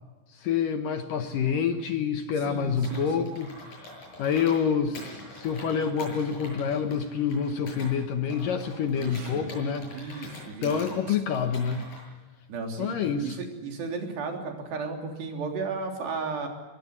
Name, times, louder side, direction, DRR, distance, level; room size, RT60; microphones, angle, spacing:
voice 1, 0.4-3.9 4.2-10.3 10.6-11.9 12.8-13.4, left 6 dB, 65° left, 7 dB, 2.4 m, -27 dB
voice 2, 2.5-3.3 9.0-9.5 9.9-11.2 12.5-16.5, right 4 dB, 75° right, 3 dB, 5.6 m, -35 dB
Computer keyboard, 2.8-4.6 4.9-7.9 8.3-10.9 11.3-12.0, left 1 dB, 45° left, 9.5 m, -44 dB
23.0 x 22.0 x 9.6 m, 1.2 s
omnidirectional pair, 4.9 m